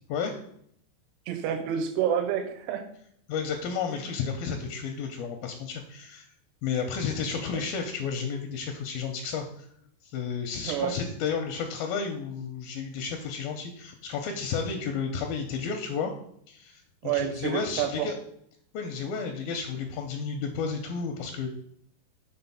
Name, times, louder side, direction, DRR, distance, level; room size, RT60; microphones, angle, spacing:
voice 1, 1.3-2.9 10.6-10.9 17.0-18.1, right 9 dB, 90° right, 7 dB, 2.8 m, -28 dB
voice 2, 3.3-6.3 6.6-9.7 10.0-16.1 16.5-18.1 18.7-21.5, left 6 dB, 80° left, 4 dB, 2.2 m, -32 dB
6.1 x 4.1 x 5.6 m, 0.68 s
omnidirectional pair, 4.8 m